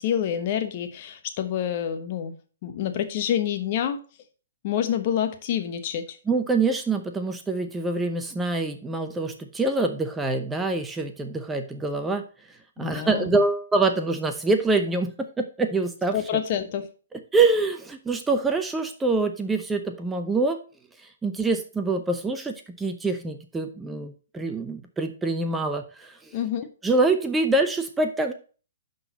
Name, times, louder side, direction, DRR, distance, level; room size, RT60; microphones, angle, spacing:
voice 1, 0.0-2.4 2.6-4.0 4.6-6.2 12.8-13.3 16.1-16.9 26.3-26.7, left 9 dB, 40° left, 7 dB, 1.1 m, -27 dB
voice 2, 6.3-12.2 12.8-16.2 17.3-20.6 21.0-26.4 26.8-28.3, right 3 dB, 10° right, 6 dB, 0.7 m, -25 dB
11.5 x 4.1 x 4.1 m, 0.38 s
figure-of-eight pair, 120°, 0 cm